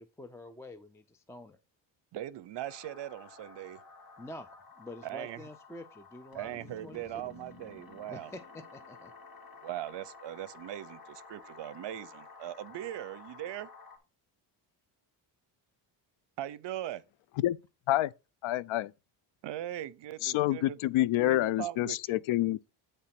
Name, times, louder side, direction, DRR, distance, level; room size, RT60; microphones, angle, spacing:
voice 1, 0.0-1.6 4.2-7.0 8.1-9.1, left 1 dB, 5° left, 0.3 m, -47 dB
voice 2, 2.1-3.8 5.0-5.4 6.3-8.3 9.6-13.7 16.4-17.0 19.4-20.8 21.2-22.2, right 13 dB, 60° right, 0.7 m, -40 dB
sound 1, 2.6-14.0, left 4 dB, 45° left, 2.0 m, -52 dB
voice 3, 18.4-18.9 20.2-22.6, left 15 dB, 75° left, 0.5 m, -28 dB
8.8 x 3.4 x 5.8 m
cardioid pair, 130°, 49 cm